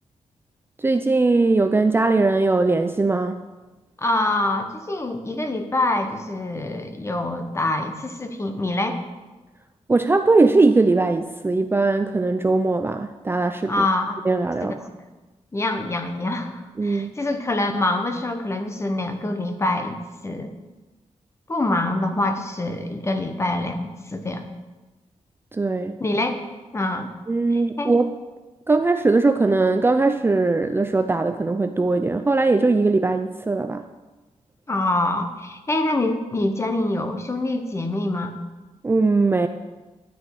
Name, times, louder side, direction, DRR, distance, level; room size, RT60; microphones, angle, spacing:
voice 1, 0.8-3.4 9.9-13.8 14.2-14.9 16.8-17.2 25.5-26.0 27.3-28.1 28.7-33.8 38.8-39.5, right 3 dB, 20° right, 7 dB, 0.4 m, -20 dB
voice 2, 4.0-9.0 13.7-14.2 14.6-14.7 15.5-20.0 20.2-20.5 21.5-24.5 26.0-26.4 26.7-27.1 27.5-27.9 34.7-38.3, left 2 dB, 20° left, 6 dB, 1.1 m, -25 dB
10.5 x 9.9 x 4.8 m, 1.2 s
wide cardioid pair, 135°, 12 cm